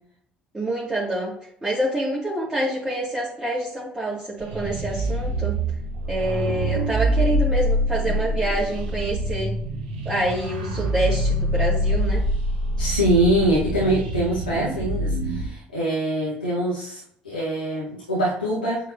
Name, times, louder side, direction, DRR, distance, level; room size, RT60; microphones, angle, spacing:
voice 1, 0.5-1.3 1.6-5.6 6.1-9.5 10.0-12.2, right 1 dB, 15° right, -8 dB, 2.5 m, -26 dB
sound 1, 4.4-15.5, equal, 80° right, 1.1 m, -25 dB
voice 2, 12.8-18.9, right 1 dB, 90° left, -7 dB, 1.4 m, -24 dB
8.9 x 3.9 x 2.9 m, 0.68 s
figure-of-eight pair, 55°, 5 cm